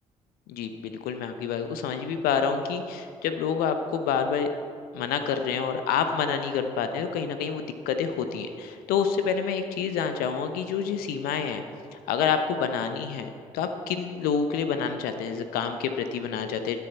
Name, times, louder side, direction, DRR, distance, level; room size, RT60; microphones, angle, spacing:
voice 1, 0.5-4.5 4.9-11.6 11.9-16.8, left 6 dB, 65° left, 8 dB, 0.8 m, -28 dB
20.0 x 7.0 x 4.4 m, 2.4 s
figure-of-eight pair, 45°, 17 cm